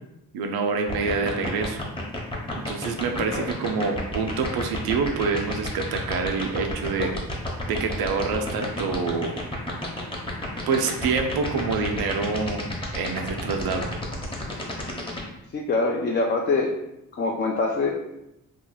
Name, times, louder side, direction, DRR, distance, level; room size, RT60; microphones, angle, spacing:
voice 1, 0.3-1.8 2.5-7.1 7.7-9.4 10.7-12.6 12.9-13.9, right 4 dB, 85° right, 4 dB, 0.5 m, -26 dB
sound 1, 0.9-15.2, left 1 dB, 15° left, 0.8 m, -31 dB
voice 2, 15.5-16.7 17.2-17.9, left 3 dB, 30° left, -1 dB, 0.4 m, -24 dB
2.9 x 2.3 x 3.8 m, 0.85 s
cardioid pair, 100°, 36 cm